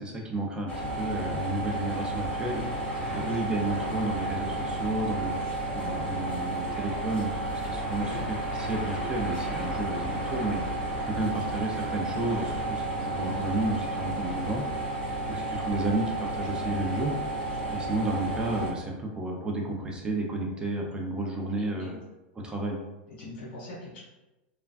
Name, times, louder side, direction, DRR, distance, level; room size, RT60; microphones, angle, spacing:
voice 1, 0.0-2.6 3.1-5.3 5.7-10.6 11.1-14.6 15.2-17.1 17.7-22.0 22.4-22.8, right 2 dB, 15° right, 0 dB, 0.5 m, -32 dB
sound 1, 0.7-18.7, right 2 dB, 20° left, 1.2 m, -32 dB
voice 2, 21.5-22.0 23.1-24.0, left 2 dB, 70° left, -3 dB, 1.4 m, -43 dB
3.4 x 2.2 x 2.4 m, 1.0 s
supercardioid pair, 125°, 6 cm